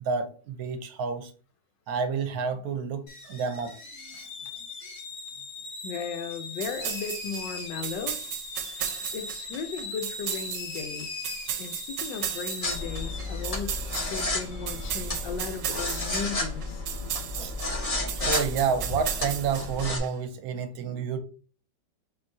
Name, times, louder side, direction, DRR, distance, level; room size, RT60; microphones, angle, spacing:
voice 1, 0.1-1.3 1.9-3.8 4.1-4.2 14.1-14.2 17.4-17.5 18.2-21.2, right 6 dB, 65° right, 1.1 m, -29 dB
sound 1, 3.1-15.3, left 3 dB, 55° left, 1.5 m, -40 dB
voice 2, 5.8-8.2 9.1-11.2 11.6-13.8 14.0-16.8, left 5 dB, 90° left, 1.4 m, -36 dB
sound 2, 6.6-20.1, right 10 dB, 85° right, 1.3 m, -36 dB
sound 3, 12.6-20.0, left 2 dB, 25° left, 1.1 m, -32 dB
5.7 x 3.1 x 2.7 m
omnidirectional pair, 1.9 m